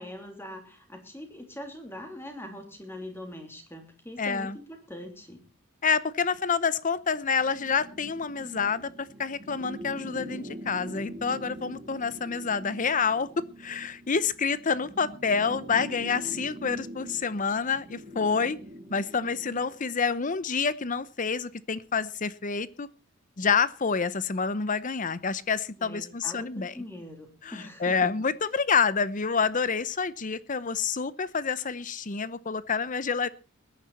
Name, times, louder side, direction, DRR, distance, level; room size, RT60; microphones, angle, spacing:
voice 1, 0.0-5.5 25.7-28.1, left 1 dB, 10° left, 4 dB, 3.2 m, -42 dB
voice 2, 4.2-4.6 5.8-18.6 18.9-22.9 23.4-26.7 27.4-33.3, left 5 dB, 40° left, 17 dB, 0.7 m, -28 dB
sound 1, 7.3-19.8, right 1 dB, 30° right, 1.7 m, -43 dB
20.5 x 10.0 x 4.2 m, 0.33 s
head